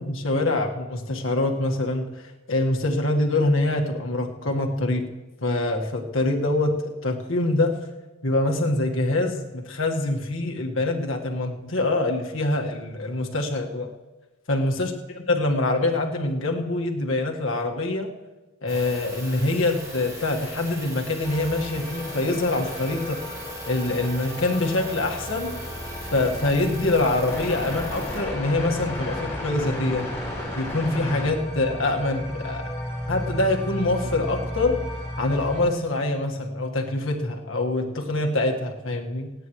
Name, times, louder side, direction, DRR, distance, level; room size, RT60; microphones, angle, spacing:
voice 1, 0.0-5.1 5.4-7.8 8.2-13.9 14.5-18.1 18.6-25.6 26.1-30.1 30.6-32.7 33.1-39.3, left 2 dB, 70° left, 1 dB, 1.6 m, -25 dB
sound 1, 18.7-28.2, right 1 dB, 15° right, 3.9 m, -38 dB
sound 2, 21.2-35.7, left 1 dB, 15° left, 4.5 m, -34 dB
27.0 x 9.4 x 3.2 m, 1.2 s
head